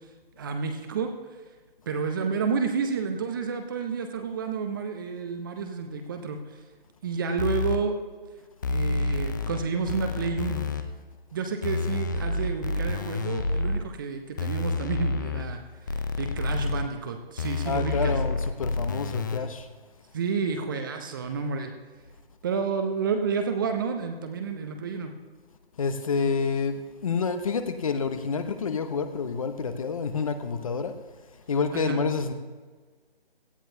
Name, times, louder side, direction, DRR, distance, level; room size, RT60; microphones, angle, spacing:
voice 1, 0.4-1.1 1.9-6.4 7.0-7.9 8.7-10.7 11.3-15.6 16.2-18.2 20.1-21.7 22.4-25.1 31.7-32.0, right 5 dB, 20° right, 0.8 m, -30 dB
sound 1, 7.4-7.8 8.6-9.6 9.9-10.8 11.6-13.8 14.4-15.4 15.9-16.8 17.4-19.4, left 3 dB, 20° left, 0.6 m, -29 dB
voice 2, 17.6-19.7 25.8-30.9 31.5-32.3, left 5 dB, 35° left, 1.0 m, -28 dB
17.5 x 15.0 x 2.8 m
figure-of-eight pair, 145°, 30 cm